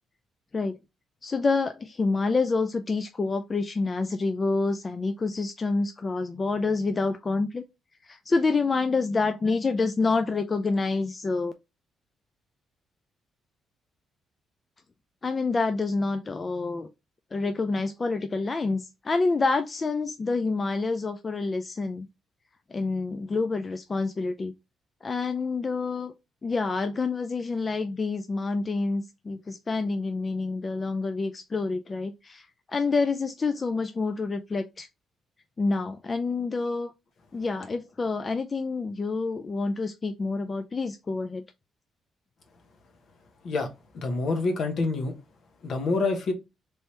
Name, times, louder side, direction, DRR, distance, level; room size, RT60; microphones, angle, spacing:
voice 1, 1.2-7.6 8.0-11.5 15.2-16.9 17.3-22.1 22.7-24.5 25.0-26.1 26.4-34.9 35.6-36.9 37.3-41.4, left 3 dB, 30° left, 0.3 m, -27 dB
voice 2, 43.4-45.1 45.6-46.3, left 3 dB, 60° left, 0.9 m, -27 dB
3.3 x 2.7 x 3.1 m
cardioid pair, 90°, 0 cm